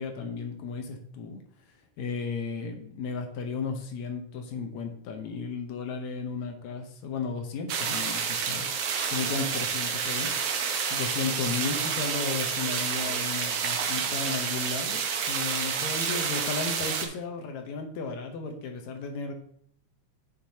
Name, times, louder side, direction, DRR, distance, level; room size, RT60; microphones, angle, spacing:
voice 1, 0.0-1.4 2.0-8.7 9.1-10.5 10.9-19.3, left 4 dB, 75° left, 4 dB, 2.1 m, -34 dB
sound 1, 7.7-17.1, right 6 dB, 65° right, 1.8 m, -29 dB
9.5 x 6.6 x 2.8 m, 0.65 s
omnidirectional pair, 3.4 m